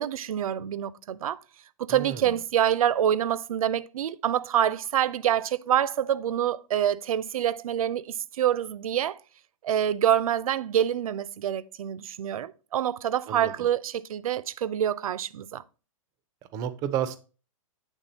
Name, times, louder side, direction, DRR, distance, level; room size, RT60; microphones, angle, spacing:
voice 1, 0.0-1.4 1.8-9.2 9.6-15.6, right 10 dB, 80° right, 0.5 m, -26 dB
voice 2, 1.9-2.3 13.3-13.7 16.5-17.2, right 10 dB, 20° right, 0.4 m, -31 dB
8.2 x 3.5 x 4.1 m
hypercardioid pair, 155°, 18 cm